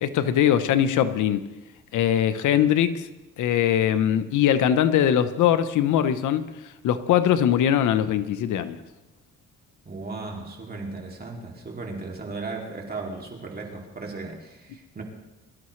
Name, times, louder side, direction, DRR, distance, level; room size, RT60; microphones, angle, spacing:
voice 1, 0.0-1.4 1.9-3.0 3.4-6.5 6.8-8.8, left 10 dB, 80° left, 0.9 m, -21 dB
voice 2, 9.8-15.0, right 3 dB, 30° right, 2.6 m, -36 dB
23.0 x 13.0 x 3.2 m
cardioid pair, 90°, 30 cm